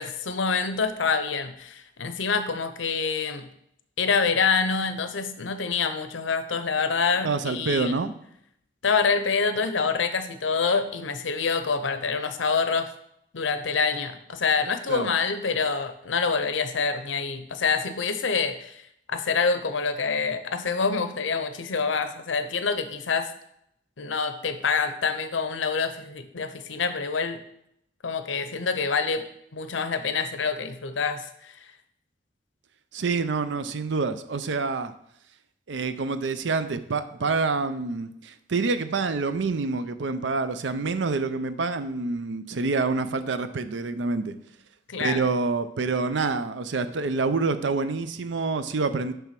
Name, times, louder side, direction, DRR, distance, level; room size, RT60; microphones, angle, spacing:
voice 1, 0.0-3.5 4.0-8.0 8.8-12.9 13.3-18.8 19.1-23.3 24.0-27.4 28.0-29.3 29.5-31.5 44.9-45.2, left 5 dB, 90° left, 10 dB, 0.7 m, -26 dB
voice 2, 7.2-8.1 14.9-15.1 32.9-34.9 35.7-44.3 45.0-49.1, right 4 dB, 80° right, 11 dB, 0.5 m, -27 dB
9.1 x 3.5 x 5.9 m, 0.75 s
head